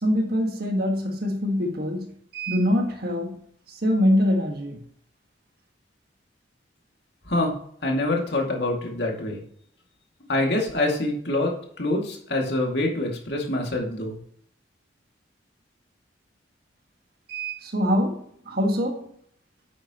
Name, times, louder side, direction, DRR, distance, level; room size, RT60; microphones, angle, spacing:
voice 1, 0.0-3.4 3.8-4.8 17.3-19.1, equal, 50° right, 1.7 m, -24 dB
voice 2, 7.8-9.4 10.3-11.5 11.8-14.2, left 2 dB, 60° left, 2.3 m, -25 dB
10.5 x 8.7 x 3.0 m
head